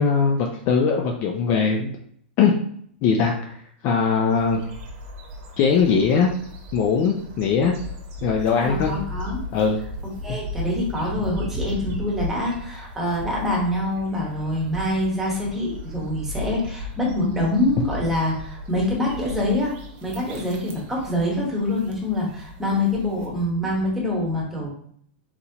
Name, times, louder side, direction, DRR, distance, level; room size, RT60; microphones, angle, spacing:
voice 1, 0.0-1.9 2.4-2.5 3.0-3.5 3.8-4.6 5.6-6.3 6.7-7.7 8.2-8.9 9.5-9.8, left 5 dB, 30° left, 2 dB, 0.4 m, -20 dB
sound 1, 4.3-23.3, left 1 dB, 35° right, 1.0 m, -36 dB
voice 2, 8.6-9.4 10.2-19.7 20.0-24.7, left 1 dB, 5° right, -3 dB, 1.1 m, -25 dB
4.2 x 4.1 x 2.9 m, 0.63 s
supercardioid pair, 170°, 6 cm